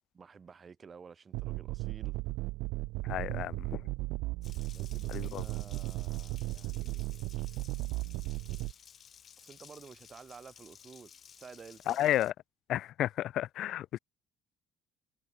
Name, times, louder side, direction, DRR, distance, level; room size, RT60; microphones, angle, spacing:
voice 1, 0.1-2.2 4.7-7.2 9.4-12.1, right 6 dB, 40° right, 1.8 m, -52 dB
sound 1, 1.3-8.7, right 21 dB, 80° right, 0.4 m, -36 dB
voice 2, 3.0-3.8 5.1-5.4 11.9-12.3 12.7-14.0, left 13 dB, 65° left, 0.5 m, -32 dB
Water tap faucet, 4.4-12.3, left 8 dB, 50° left, 4.0 m, -56 dB
supercardioid pair, 75°, 0 cm